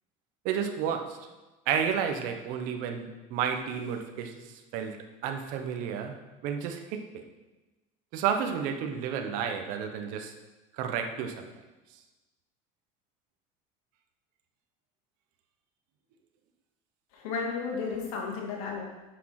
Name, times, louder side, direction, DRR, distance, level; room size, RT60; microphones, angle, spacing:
voice 1, 0.4-1.2 1.7-4.3 4.7-5.0 5.2-6.2 6.4-7.0 8.1-10.3 10.8-11.5, right 7 dB, 50° right, 5 dB, 1.0 m, -31 dB
voice 2, 17.1-18.8, left 5 dB, 90° left, -1 dB, 2.4 m, -33 dB
9.5 x 6.4 x 4.9 m, 1.1 s
cardioid pair, 180°, 17 cm